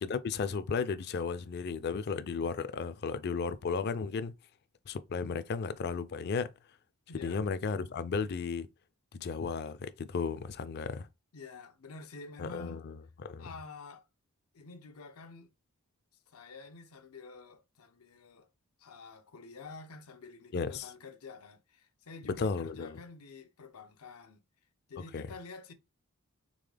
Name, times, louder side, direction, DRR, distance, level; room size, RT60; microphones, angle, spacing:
voice 1, 0.0-4.3 4.9-6.5 7.2-8.7 9.1-11.1 12.4-13.5 20.5-20.8 22.4-23.0 25.1-25.3, left 5 dB, 50° left, 0.4 m, -34 dB
voice 2, 7.1-7.4 11.3-12.8 13.4-14.1 14.5-15.5 16.3-18.5 18.8-24.4 24.9-25.7, left 4 dB, 85° left, 0.7 m, -49 dB
3.9 x 3.5 x 3.3 m
head